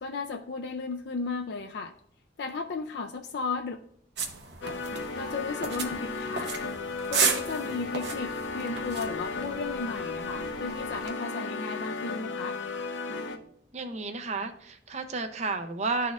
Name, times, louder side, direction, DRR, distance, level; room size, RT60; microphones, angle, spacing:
voice 1, 0.0-1.9 2.4-3.8 4.6-4.7 5.2-6.5 7.1-12.6, left 4 dB, 60° left, 3 dB, 0.4 m, -35 dB
sound 1, 4.2-11.1, right 5 dB, 60° right, 0.8 m, -34 dB
sound 2, 4.6-13.4, left 3 dB, 85° left, 0.7 m, -35 dB
voice 2, 13.7-16.1, right 3 dB, 35° right, 7 dB, 0.5 m, -32 dB
12.0 x 4.2 x 2.4 m, 0.67 s
head